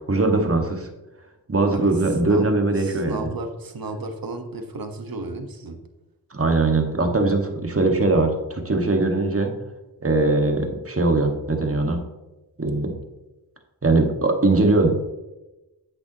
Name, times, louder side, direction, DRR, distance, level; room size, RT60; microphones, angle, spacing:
voice 1, 0.1-0.9 1.5-3.3 6.3-9.5 10.0-12.0 12.6-13.0 13.8-14.9, right 2 dB, 35° right, 3 dB, 1.9 m, -21 dB
voice 2, 2.8-5.8, right 2 dB, 55° right, 6 dB, 1.5 m, -33 dB
9.9 x 8.3 x 3.0 m, 1.0 s
cardioid pair, 45°, 42 cm